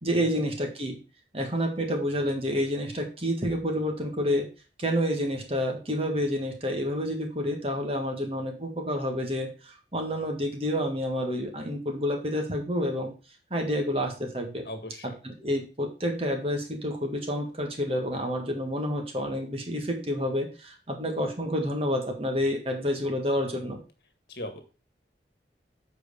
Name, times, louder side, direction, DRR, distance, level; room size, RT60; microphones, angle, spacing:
voice 1, 0.0-1.0 1.3-4.5 4.8-13.1 13.5-14.6 15.0-23.8, equal, 30° right, 3 dB, 1.8 m, -29 dB
voice 2, 14.6-15.1 24.3-24.6, left 1 dB, 60° left, 6 dB, 1.7 m, -38 dB
7.8 x 4.6 x 5.3 m, 0.34 s
head